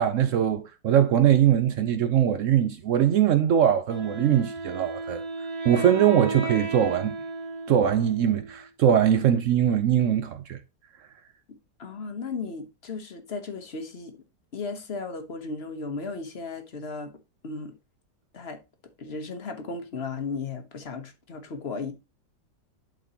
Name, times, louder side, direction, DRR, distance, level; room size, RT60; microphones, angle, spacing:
voice 1, 0.0-5.2 5.6-7.2 7.7-10.6, right 10 dB, 80° right, 0.6 m, -22 dB
Wind instrument woodwind instrument, 3.9-8.7, right 2 dB, 60° right, 2.1 m, -34 dB
voice 2, 11.8-14.2 14.5-17.1 17.4-17.7 18.3-18.6 19.0-21.9, left 4 dB, 40° left, 1.0 m, -35 dB
11.5 x 4.1 x 2.8 m
omnidirectional pair, 2.0 m